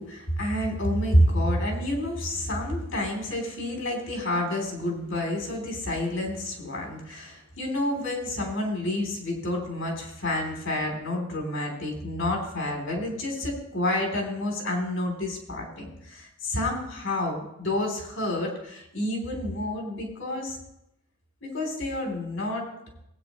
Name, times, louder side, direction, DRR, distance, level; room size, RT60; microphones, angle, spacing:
voice 1, 0.0-20.6 21.4-22.7, left 1 dB, 65° left, 0 dB, 3.4 m, -29 dB
18.5 x 9.2 x 3.1 m, 0.81 s
head